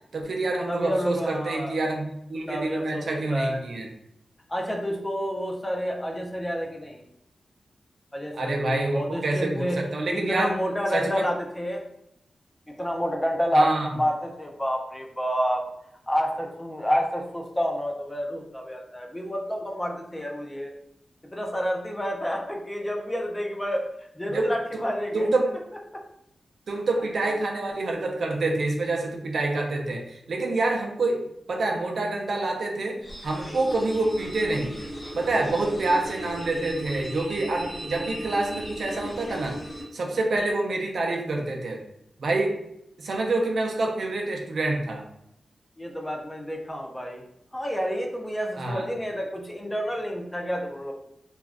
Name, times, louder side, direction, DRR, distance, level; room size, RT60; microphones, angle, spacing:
voice 1, 0.1-3.9 8.3-10.6 10.9-11.3 13.5-13.9 24.3-24.8 25.1-25.5 26.7-34.8 35.1-39.6 39.9-41.8 42.2-42.6 43.0-45.1 48.6-48.9, right 2 dB, 70° right, 1 dB, 0.5 m, -27 dB
voice 2, 0.7-1.7 2.5-3.0 3.3-3.6 4.5-7.0 8.1-9.8 10.1-11.8 12.8-15.6 16.1-20.7 21.2-23.8 24.1-25.3 25.9-26.0 45.8-47.2 47.5-50.9, equal, 10° left, 1 dB, 0.4 m, -29 dB
sound 1, 33.0-39.8, equal, 30° left, 1.2 m, -37 dB
2.4 x 2.2 x 3.3 m, 0.79 s
wide cardioid pair, 115°, 0 cm